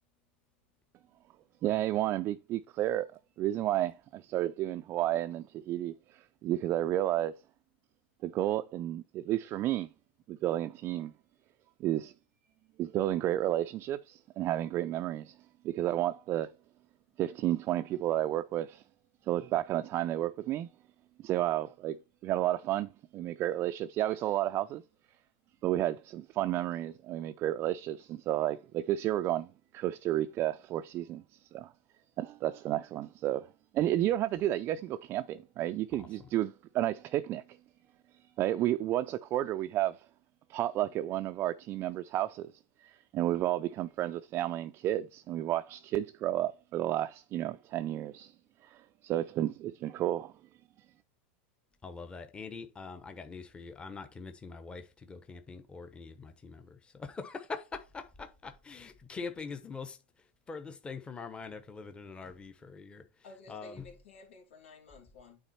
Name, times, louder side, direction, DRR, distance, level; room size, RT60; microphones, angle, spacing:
voice 1, 1.6-3.1 3.4-7.3 8.2-9.9 10.3-11.1 11.8-12.1 12.8-15.4 15.6-16.5 17.2-18.8 19.3-20.7 21.2-22.0 22.2-24.8 25.6-29.5 29.7-31.7 32.2-33.5 33.7-37.4 38.4-40.0 40.5-42.5 42.8-48.3 48.6-50.3, right 13 dB, 40° right, 0.4 m, -31 dB
voice 2, 35.9-36.3 51.8-63.9, left 4 dB, 15° left, 0.9 m, -44 dB
voice 3, 63.2-65.4, left 3 dB, 90° left, 2.7 m, -53 dB
9.0 x 3.8 x 4.3 m
supercardioid pair, 125°, 6 cm